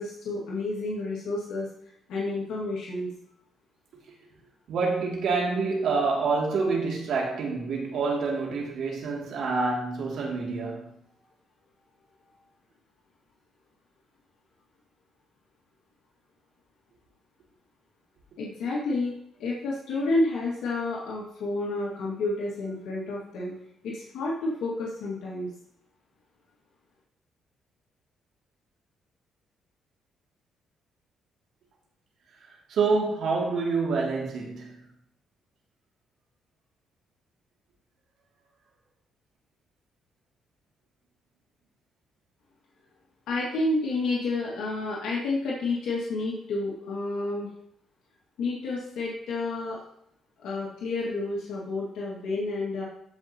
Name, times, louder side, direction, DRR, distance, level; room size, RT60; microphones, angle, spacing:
voice 1, 0.0-1.7 2.1-3.1 18.4-19.1 19.4-23.5 23.8-25.5 43.3-47.5 48.4-49.8 50.4-52.8, left 2 dB, 80° left, 2.0 m, -30 dB
voice 2, 4.7-10.9 32.5-34.9, right 4 dB, 70° right, 2.5 m, -27 dB
14.0 x 5.6 x 2.9 m
cardioid pair, 90°, 0 cm